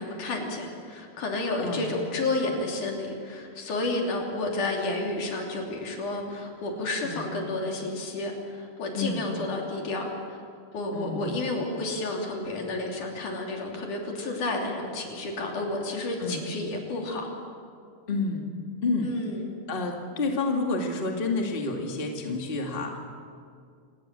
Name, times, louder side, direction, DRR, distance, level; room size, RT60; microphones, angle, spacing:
voice 1, 0.0-10.4 10.7-17.3 19.0-19.5, left 2 dB, 70° left, 0 dB, 4.6 m, -31 dB
voice 2, 1.6-1.9 7.0-7.3 8.9-9.3 10.9-11.4 16.2-16.4 18.1-18.5 18.8-19.1 19.7-23.0, left 3 dB, 20° left, 1 dB, 2.0 m, -29 dB
28.0 x 18.5 x 7.6 m, 2.2 s
omnidirectional pair, 3.8 m